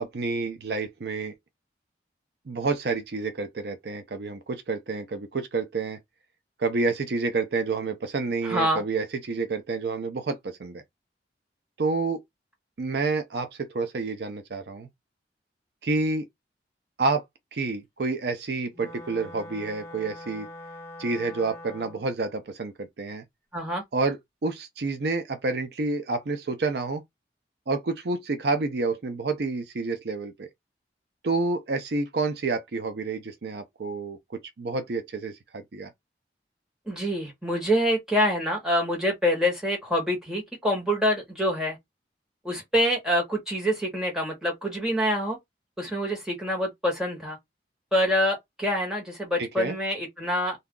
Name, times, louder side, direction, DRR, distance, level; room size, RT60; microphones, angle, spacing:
voice 1, 0.0-1.3 2.5-6.0 6.6-10.8 11.8-12.2 12.8-14.9 15.8-16.3 17.0-17.2 17.5-20.5 21.0-23.2 23.9-27.0 27.7-30.5 31.2-34.2 34.6-35.9 49.4-49.8, right 3 dB, 65° right, 0.5 m, -29 dB
voice 2, 8.4-8.8 23.5-23.8 36.9-41.8 42.4-45.4 45.8-47.4 47.9-50.6, equal, 5° right, 1.3 m, -26 dB
Wind instrument woodwind instrument, 18.7-22.1, left 1 dB, 15° left, 0.8 m, -43 dB
2.7 x 2.2 x 3.6 m
head